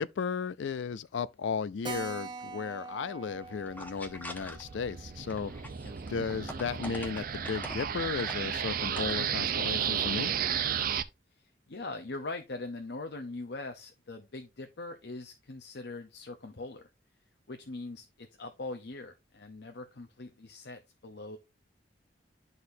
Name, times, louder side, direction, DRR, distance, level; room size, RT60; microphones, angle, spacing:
voice 1, 0.0-5.5 6.1-10.3, left 5 dB, 80° left, 0.4 m, -35 dB
Keyboard (musical), 1.8-6.9 7.2-7.3 7.6-7.7 7.9-8.0 8.6-8.9, right 4 dB, 25° right, 0.9 m, -45 dB
sound 1, 3.2-4.9 5.3-7.9 8.2-8.4 8.7-9.3, left 1 dB, 10° left, 0.8 m, -44 dB
sound 2, 3.7-11.0, right 8 dB, 50° right, 0.5 m, -33 dB
voice 2, 11.4-16.9 17.5-21.4, left 2 dB, 65° left, 0.8 m, -42 dB
11.5 x 4.1 x 2.6 m
head